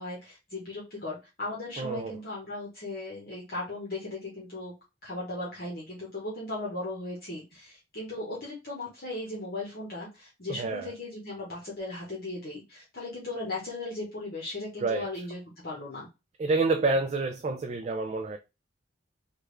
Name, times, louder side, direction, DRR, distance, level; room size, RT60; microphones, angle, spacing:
voice 1, 0.0-4.7 5.0-16.1, left 2 dB, 50° left, 1.1 m, -37 dB
voice 2, 1.8-2.2 10.5-10.9 14.8-15.1 16.4-18.4, right 3 dB, 35° right, 0.3 m, -28 dB
3.5 x 2.3 x 3.2 m
head